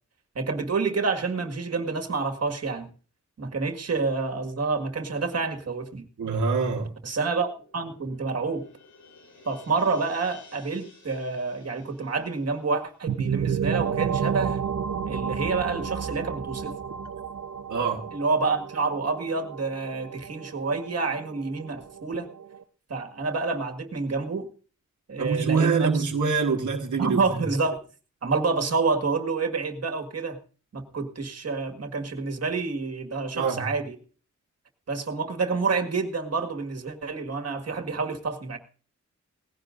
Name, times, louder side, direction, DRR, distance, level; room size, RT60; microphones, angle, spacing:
voice 1, 0.4-2.9 3.4-6.1 7.0-8.7 9.5-14.6 15.1-16.8 18.1-22.3 22.9-24.5 25.1-26.0 27.0-27.8 28.2-30.4 30.7-34.0 34.9-38.6, right 4 dB, 55° right, 1.8 m, -28 dB
voice 2, 6.2-7.0 17.7-18.1 25.2-27.5 33.3-33.7, right 5 dB, 85° right, 1.4 m, -25 dB
sound 1, 7.4-13.9, left 4 dB, 85° left, 3.9 m, -54 dB
sound 2, 13.1-22.6, right 7 dB, 70° right, 0.8 m, -31 dB
19.0 x 16.0 x 2.6 m
wide cardioid pair, 105°, 29 cm